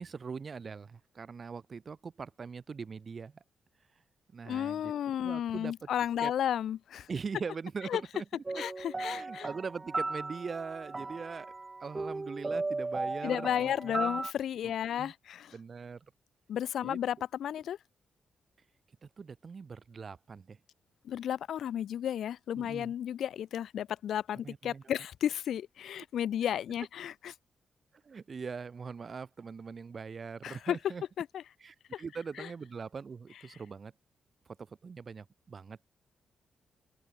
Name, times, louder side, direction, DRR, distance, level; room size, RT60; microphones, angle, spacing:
voice 1, 0.0-3.4 4.3-4.9 5.2-5.9 6.2-6.3 7.1-8.6 9.1-11.5 11.8-14.2 14.6-15.1 15.5-16.1 16.8-17.0 19.0-20.6 22.6-22.9 24.4-24.8 28.0-31.0 31.6-33.9 34.7-35.8, right 5 dB, 35° right, 1.8 m, -42 dB
voice 2, 4.5-7.1 7.9-8.0 8.5-9.5 13.2-15.5 16.5-17.8 21.0-27.3 30.4-30.8 31.2-31.4 31.9-32.0 32.4-32.5, left 10 dB, 75° left, 0.6 m, -33 dB
sound 1, 8.4-14.3, right 3 dB, 20° right, 1.4 m, -36 dB
open air
wide cardioid pair, 140°, 0 cm